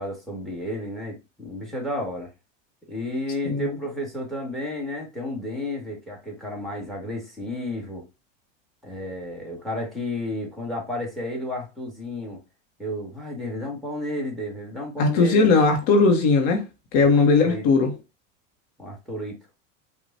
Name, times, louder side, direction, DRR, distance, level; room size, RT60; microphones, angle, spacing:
voice 1, 0.0-2.3 2.9-8.1 8.8-12.4 12.8-15.5 17.0-17.1 17.4-17.6 18.8-19.4, left 1 dB, ahead, 1.9 m, -32 dB
voice 2, 15.0-16.7 16.9-17.9, left 4 dB, 60° left, 1.1 m, -18 dB
5.1 x 2.5 x 2.7 m
hypercardioid pair, 110°, 37 cm